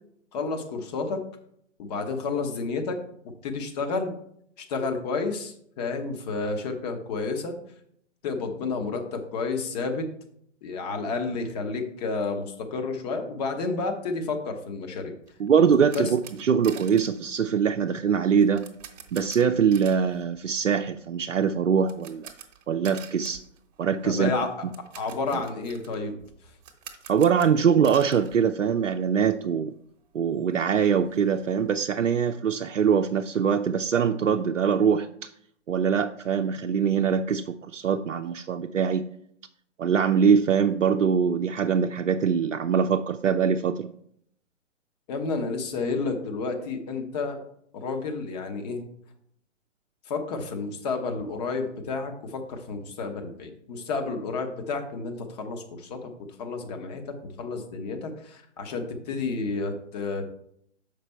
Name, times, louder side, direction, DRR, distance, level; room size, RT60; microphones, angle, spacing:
voice 1, 0.3-1.2 1.8-3.0 3.2-4.1 4.6-7.6 8.2-10.1 10.6-15.1 15.9-16.1 24.0-24.7 24.9-26.2 45.1-47.4 47.7-48.8 50.1-60.2, left 4 dB, 35° left, 5 dB, 1.1 m, -31 dB
sound 1, 15.2-29.2 29.5-29.6 30.0-30.1 30.4-31.9, right 8 dB, 35° right, 1.0 m, -48 dB
voice 2, 15.4-18.7 19.1-22.3 22.7-23.4 23.8-24.3 25.3-25.4 27.1-29.7 30.1-35.3 35.7-39.1 39.8-43.9, right 7 dB, 85° right, 5 dB, 0.5 m, -23 dB
6.7 x 5.2 x 4.4 m, 0.69 s
figure-of-eight pair, 130°, 37 cm